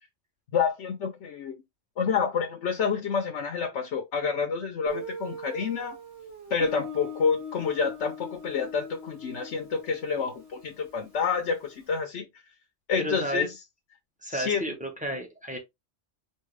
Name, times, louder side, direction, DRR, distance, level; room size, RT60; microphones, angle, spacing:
voice 1, 0.5-1.5 2.0-6.0 6.5-12.3 12.9-13.5 14.3-14.6, left 6 dB, 75° left, 1.1 m, -28 dB
Guitar, 4.9-11.5, left 1 dB, 60° right, 1.6 m, -41 dB
voice 2, 13.0-13.5 14.2-15.6, right 1 dB, 5° right, 1.2 m, -32 dB
4.7 x 2.9 x 3.2 m
omnidirectional pair, 1.2 m